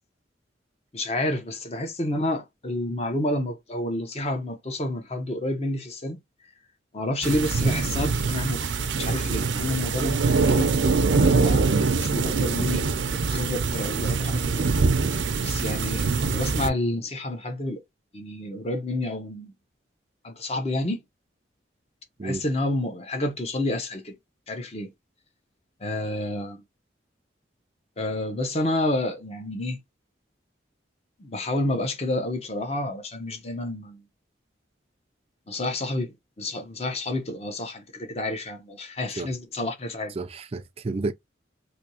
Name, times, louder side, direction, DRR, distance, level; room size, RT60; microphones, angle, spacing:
voice 1, 0.9-6.2 6.9-8.7 9.0-10.7 11.1-12.8 13.1-14.7 15.4-17.8 18.1-19.5 20.2-21.0 22.2-24.2 24.5-24.9 25.8-26.6 28.0-29.8 31.2-34.0 35.5-40.1, left 1 dB, 35° left, 0.8 m, -29 dB
sound 1, 7.2-16.7, right 4 dB, 80° right, 0.6 m, -24 dB
voice 2, 40.2-41.1, right 3 dB, 35° right, 0.4 m, -31 dB
3.4 x 2.7 x 2.8 m
head